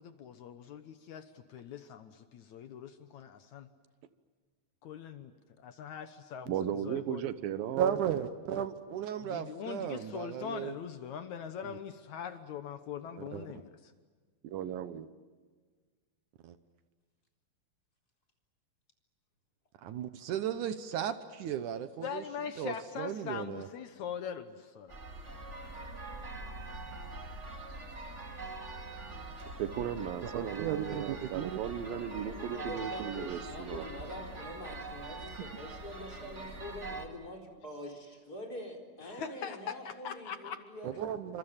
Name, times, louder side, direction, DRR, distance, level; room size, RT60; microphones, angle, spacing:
voice 1, 0.0-3.7 4.8-6.5 6.8-7.3 9.2-13.9 22.0-25.0 39.0-40.6, left 8 dB, 65° left, 10 dB, 2.2 m, -42 dB
voice 2, 6.5-8.0 14.4-15.1 29.6-33.9, right 9 dB, 85° right, 13 dB, 2.9 m, -36 dB
voice 3, 7.8-10.7 11.6-11.8 13.3-13.5 16.4-16.6 19.8-22.2 22.6-23.7 30.2-31.5 40.8-41.4, right 9 dB, 70° right, 11 dB, 2.3 m, -35 dB
sound 1, 24.9-37.1, right 3 dB, 25° right, 2.2 m, -43 dB
voice 4, 32.2-41.2, left 1 dB, 25° left, 2 dB, 4.5 m, -45 dB
28.5 x 26.0 x 7.3 m, 1.5 s
omnidirectional pair, 4.0 m